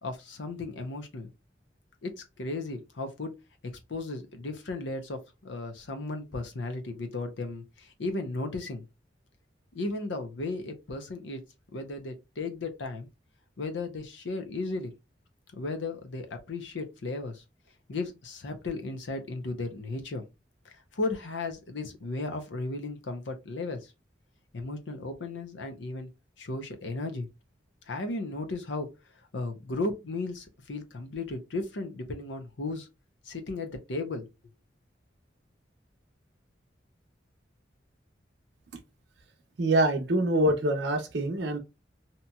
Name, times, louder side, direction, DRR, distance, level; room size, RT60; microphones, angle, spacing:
voice 1, 0.0-1.3 2.0-3.3 3.6-8.9 9.7-11.4 11.7-13.1 13.6-14.9 15.5-17.4 17.9-20.2 20.6-23.9 24.5-26.1 26.4-27.3 27.9-28.9 29.3-32.9 33.2-34.2, left 2 dB, 75° left, 0.7 m, -35 dB
voice 2, 39.6-41.6, right 1 dB, 70° right, 0.7 m, -25 dB
2.9 x 2.7 x 2.2 m
head